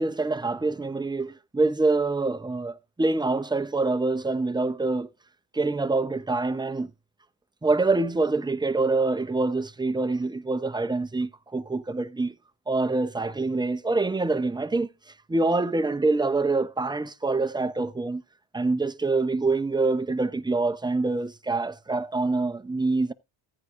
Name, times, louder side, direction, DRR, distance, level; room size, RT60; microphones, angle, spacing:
voice 1, 0.0-5.1 5.5-6.9 7.6-12.3 12.7-14.9 15.3-18.2 18.5-23.1, right 3 dB, 10° right, 0.6 m, -25 dB
14.5 x 9.8 x 2.6 m
cardioid pair, 90°, 48 cm